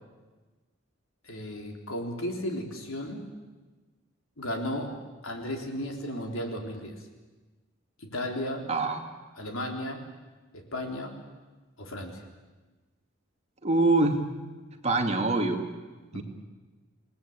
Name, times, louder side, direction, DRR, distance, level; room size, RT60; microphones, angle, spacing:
voice 1, 1.2-3.2 4.4-4.9 5.2-7.0 8.0-8.7 9.4-10.0 10.5-11.2 11.8-12.2 16.1-16.2, left 1 dB, 75° left, 3 dB, 4.2 m, -34 dB
voice 2, 8.7-9.0 13.6-14.2 14.8-15.6 16.1-16.2, right 2 dB, 30° right, 4 dB, 2.4 m, -24 dB
28.0 x 19.0 x 8.9 m, 1.3 s
head